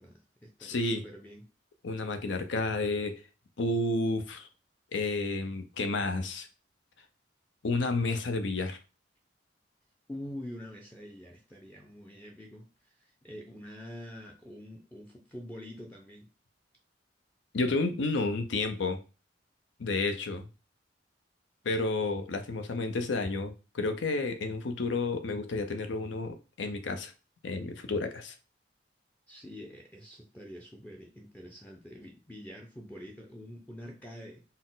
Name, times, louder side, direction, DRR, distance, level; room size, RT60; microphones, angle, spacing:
voice 1, 0.0-1.4 10.1-16.3 29.3-34.4, equal, 10° left, 0.4 m, -46 dB
voice 2, 0.6-1.0 1.8-3.2 3.6-4.5 4.9-6.5 7.6-8.8 17.5-19.0 19.8-20.5 21.6-27.1 27.4-28.4, left 3 dB, 85° left, 0.6 m, -31 dB
4.1 x 2.0 x 3.8 m
head